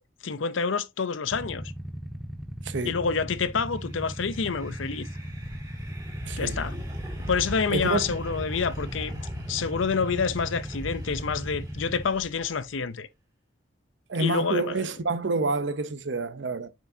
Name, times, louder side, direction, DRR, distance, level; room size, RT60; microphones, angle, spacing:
voice 1, 0.2-1.7 2.8-5.1 6.4-6.8 7.3-9.2 9.5-13.1 14.2-14.9, left 5 dB, 85° left, 0.6 m, -28 dB
Motorcycle / Idling, 1.3-12.0, equal, ahead, 0.6 m, -37 dB
sound 1, 3.6-12.8, equal, 20° right, 2.5 m, -40 dB
voice 2, 6.3-6.6 7.7-8.0 14.1-16.7, right 3 dB, 70° right, 0.7 m, -28 dB
7.3 x 5.9 x 2.7 m
head